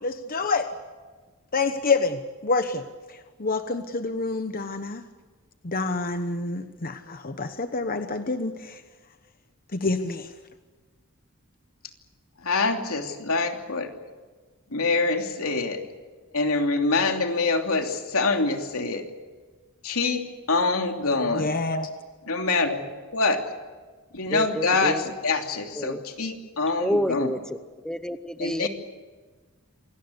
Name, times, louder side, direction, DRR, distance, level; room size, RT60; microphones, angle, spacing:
voice 1, 0.0-0.7 1.5-2.8 3.1-5.0 5.6-8.8 9.7-10.3 21.4-21.9, left 3 dB, 40° left, 8 dB, 1.0 m, -27 dB
voice 2, 12.4-13.9 14.7-15.8 16.3-19.0 19.8-20.2 20.5-21.5 22.3-22.8 23.1-23.4 24.1-27.3 28.4-28.7, left 3 dB, 85° left, 3 dB, 3.0 m, -25 dB
voice 3, 24.3-25.0 25.8-26.0 26.8-27.4 27.8-28.7, equal, 5° left, 10 dB, 0.8 m, -28 dB
27.0 x 18.5 x 8.2 m, 1.4 s
head